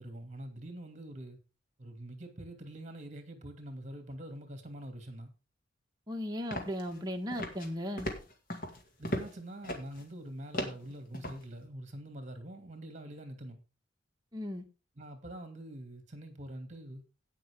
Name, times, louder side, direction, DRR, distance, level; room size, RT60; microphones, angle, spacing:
voice 1, 0.0-1.4 1.8-5.3 9.0-13.6 15.0-17.0, right 1 dB, 40° right, 2.5 m, -45 dB
voice 2, 6.1-8.1 14.3-14.6, equal, 20° right, 1.6 m, -36 dB
sound 1, 6.5-7.0 7.3-7.7 8.0-9.4 9.6-10.0 10.5-11.4, equal, 45° left, 2.2 m, -37 dB
17.5 x 5.9 x 3.7 m
head